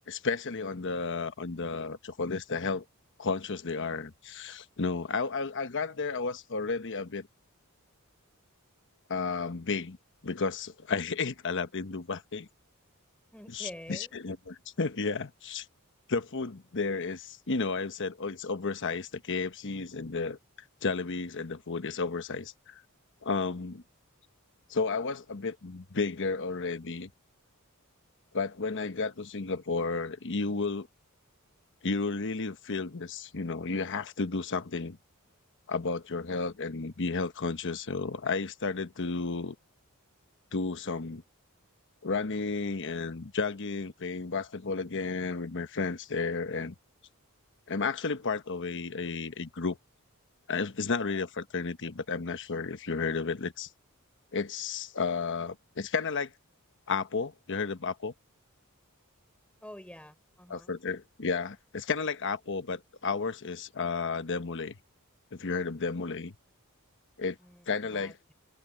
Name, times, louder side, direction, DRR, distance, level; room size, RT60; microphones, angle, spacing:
voice 1, 0.1-2.8 3.2-7.3 9.1-10.0 10.2-12.5 13.5-15.7 16.1-20.4 20.8-22.8 23.2-23.8 24.7-27.1 28.3-30.9 31.8-35.0 35.7-39.5 40.5-41.2 42.0-46.7 47.7-49.8 50.5-53.7 54.3-56.3 56.9-58.1 60.5-64.8 65.3-66.3 67.2-67.4 67.7-68.1, left 4 dB, 55° left, 1.1 m, -32 dB
voice 2, 13.3-14.1 59.6-60.7 67.4-67.7 67.9-68.3, left 1 dB, 5° left, 4.0 m, -47 dB
head